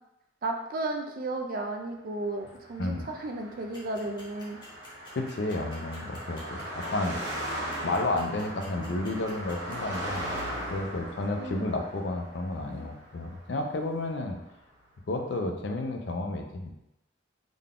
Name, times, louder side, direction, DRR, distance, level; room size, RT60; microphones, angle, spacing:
voice 1, 0.4-4.6 7.5-7.7 11.4-11.8, right 2 dB, 45° right, 4 dB, 0.4 m, -34 dB
Car passing by, 2.6-14.1, equal, 60° right, 1.4 m, -39 dB
sound 1, 3.7-10.4, left 3 dB, 25° left, 0.9 m, -51 dB
voice 2, 5.2-7.4 7.8-10.3 10.7-14.4 15.1-16.7, left 2 dB, 60° left, 3 dB, 0.4 m, -31 dB
3.7 x 2.2 x 3.6 m, 0.90 s
head